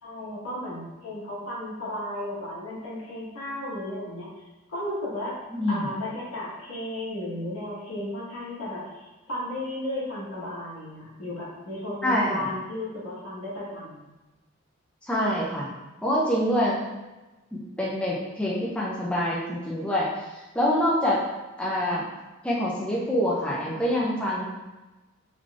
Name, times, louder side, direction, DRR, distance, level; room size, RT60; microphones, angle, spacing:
voice 1, 0.0-4.3 4.7-5.4 5.7-14.1, left 1 dB, 90° left, -7 dB, 1.3 m, -34 dB
voice 2, 5.5-5.9 12.0-12.4 15.1-15.7 16.0-16.8 17.5-20.1 20.3-21.2 21.6-22.0 22.4-24.5, equal, 5° left, -6 dB, 0.5 m, -25 dB
3.8 x 3.1 x 2.4 m, 1.1 s
head